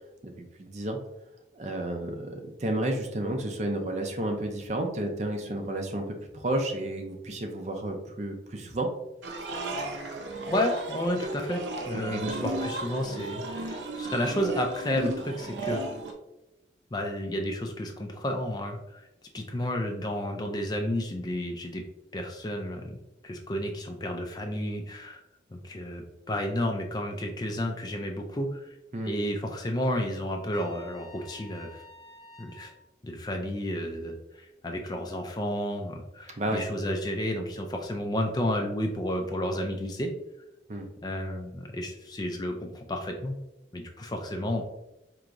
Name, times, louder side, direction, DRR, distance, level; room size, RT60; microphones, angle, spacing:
voice 1, 0.6-1.0 1.5-8.9 12.1-12.2 28.9-29.1 36.4-36.6 40.7-40.9, right 1 dB, 40° right, 4 dB, 0.5 m, -31 dB
sound 1, 9.2-16.1, right 2 dB, 85° right, 0.7 m, -34 dB
voice 2, 10.5-11.6 11.8-15.8 16.9-19.1 19.3-21.8 22.1-23.0 23.2-25.2 25.5-28.8 29.1-31.8 32.4-32.7 33.0-40.1 41.0-43.4 43.7-44.6, left 1 dB, 20° left, 3 dB, 0.4 m, -31 dB
Trumpet, 30.5-32.8, left 1 dB, 60° left, 0.8 m, -50 dB
4.5 x 2.9 x 2.5 m, 0.92 s
head